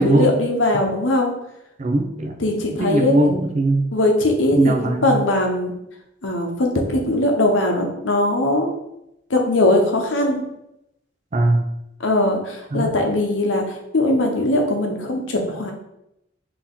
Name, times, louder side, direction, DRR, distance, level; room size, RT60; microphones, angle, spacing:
voice 1, 0.0-1.3 2.4-3.3 3.9-4.7 5.0-5.7 6.2-8.7 9.3-10.4 12.0-13.6 13.9-15.7, left 1 dB, 90° left, 2 dB, 0.8 m, -20 dB
voice 2, 1.8-2.4 2.8-3.9 4.5-5.2 11.3-11.7 12.7-13.0, right 2 dB, 40° right, 4 dB, 0.4 m, -20 dB
4.2 x 2.9 x 3.7 m, 0.83 s
head